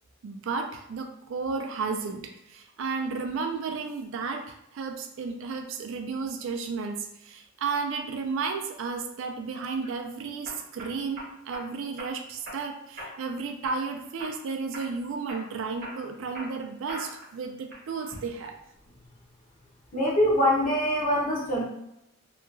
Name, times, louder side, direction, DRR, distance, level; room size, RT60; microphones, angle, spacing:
voice 1, 0.2-18.6, right 4 dB, 65° right, 5 dB, 0.4 m, -33 dB
sound 1, 9.6-9.9 10.5-11.7 12.0-12.6 13.0-13.3 13.6-14.4 14.7-15.0 15.3-17.3 17.7-18.2, right 1 dB, 45° right, 0.8 m, -41 dB
voice 2, 19.9-21.6, equal, 40° left, -4 dB, 0.8 m, -24 dB
2.8 x 2.3 x 2.5 m, 0.82 s
head